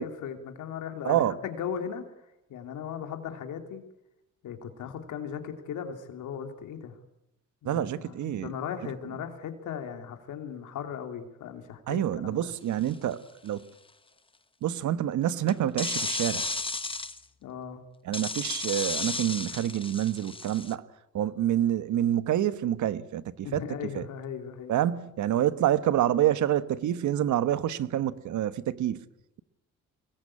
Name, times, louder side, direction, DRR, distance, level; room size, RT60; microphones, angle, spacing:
voice 1, 0.0-2.0 2.5-3.8 4.4-7.0 7.6-12.5 17.4-17.8 23.4-24.7, left 8 dB, 80° left, 2.9 m, -37 dB
voice 2, 1.0-1.4 7.6-8.5 11.9-13.6 14.6-16.5 18.0-20.8 21.1-23.6 23.9-24.0 24.7-29.1, right 11 dB, 75° right, 1.2 m, -27 dB
sound 1, 12.9-13.1 15.5-17.2 18.1-20.7, left 3 dB, 15° left, 1.2 m, -33 dB
24.0 x 20.0 x 8.7 m
cardioid pair, 90°, 30 cm